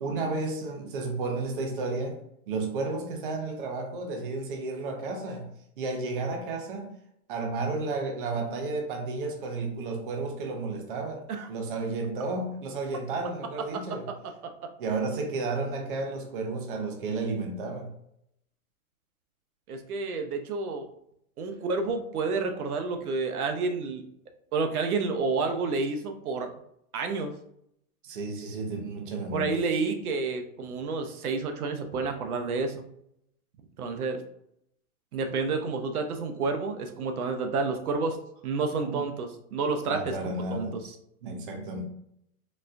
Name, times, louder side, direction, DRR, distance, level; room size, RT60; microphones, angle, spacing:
voice 1, 0.0-2.2 2.5-6.9 7.3-14.1 14.8-17.9 28.0-29.6 38.8-39.0 39.9-40.7 41.2-41.8, right 3 dB, 40° right, 2 dB, 0.6 m, -32 dB
voice 2, 19.7-20.9 21.4-24.0 24.5-26.5 26.9-27.3 29.3-32.8 33.8-34.2 35.1-38.2 38.4-40.2 40.5-40.8, right 4 dB, 80° right, 6 dB, 0.7 m, -29 dB
4.1 x 2.2 x 2.5 m, 0.75 s
hypercardioid pair, 160°, 44 cm